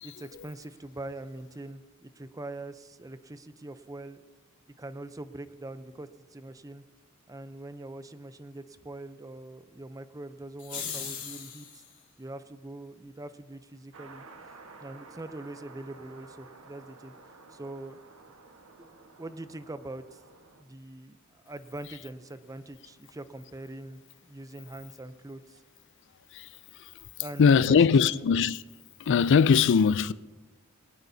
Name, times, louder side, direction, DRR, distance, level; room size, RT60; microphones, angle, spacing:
voice 1, 0.0-4.2 4.8-6.8 7.3-11.8 12.2-14.2 14.8-17.1 17.5-18.0 18.8-20.2 20.6-21.2 21.4-25.6 27.2-28.3, right 2 dB, 15° right, 0.6 m, -43 dB
sound 1, 10.6-11.9, left 7 dB, 40° left, 2.9 m, -38 dB
sound 2, 13.9-20.6, right 3 dB, 75° right, 1.3 m, -52 dB
voice 2, 27.4-28.6 29.0-30.1, left 6 dB, 60° left, 0.4 m, -21 dB
20.0 x 18.0 x 2.7 m
head